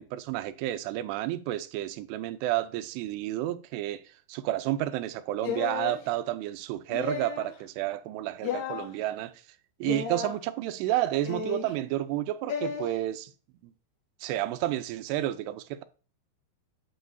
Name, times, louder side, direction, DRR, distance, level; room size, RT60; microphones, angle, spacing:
voice 1, 0.0-4.0 4.3-9.4 9.8-13.3 13.6-13.7 14.2-15.8, right 14 dB, 85° right, 2.5 m, -31 dB
sound 1, 5.4-6.0 6.9-7.5 8.4-8.9 9.8-10.4 11.3-11.7 12.5-12.8, left 6 dB, 85° left, 1.7 m, -33 dB
8.5 x 6.1 x 2.6 m
omnidirectional pair, 5.3 m